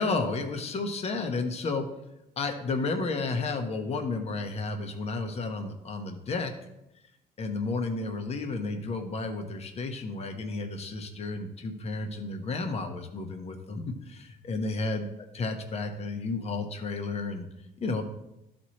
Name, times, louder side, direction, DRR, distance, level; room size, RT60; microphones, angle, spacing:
voice 1, 0.0-1.9 2.4-6.5 7.4-15.1 15.3-17.5 17.8-18.0, left 3 dB, 40° left, 5 dB, 1.0 m, -32 dB
12.5 x 4.3 x 3.1 m, 0.87 s
cardioid pair, 110°, 17 cm